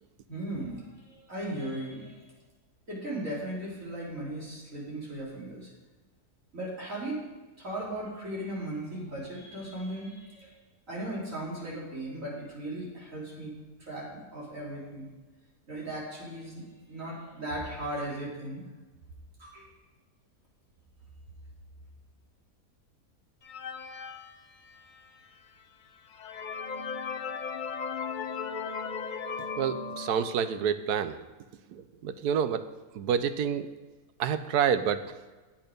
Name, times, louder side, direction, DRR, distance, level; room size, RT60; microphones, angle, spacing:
voice 1, 0.3-0.8 1.1-2.2 2.9-5.7 6.5-7.2 7.6-10.5 10.9-13.5 13.9-15.1 15.7-16.6 16.9-18.6 19.4-19.7, right 1 dB, 55° right, -5 dB, 3.5 m, -37 dB
sound 1, 23.4-25.1 25.6-25.7 26.1-30.6, left 5 dB, 65° left, 0.4 m, -37 dB
voice 2, 29.6-31.1 32.0-32.6 33.0-33.7 34.2-35.0, right 8 dB, 85° right, 11 dB, 1.1 m, -27 dB
8.8 x 8.5 x 5.1 m, 1.3 s
omnidirectional pair, 1.6 m